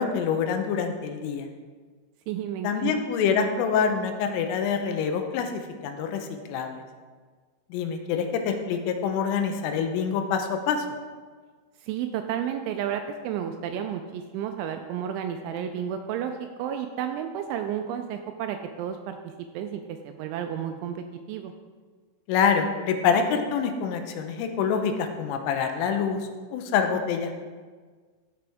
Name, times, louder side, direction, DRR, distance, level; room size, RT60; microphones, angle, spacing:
voice 1, 0.0-1.5 2.6-5.5 5.8-6.8 7.7-10.9 22.3-26.2 26.5-27.3, left 6 dB, 85° left, 6 dB, 3.3 m, -26 dB
voice 2, 2.3-2.9 11.8-21.5, right 9 dB, 85° right, 6 dB, 2.7 m, -32 dB
14.0 x 5.9 x 3.5 m, 1.5 s
omnidirectional pair, 5.7 m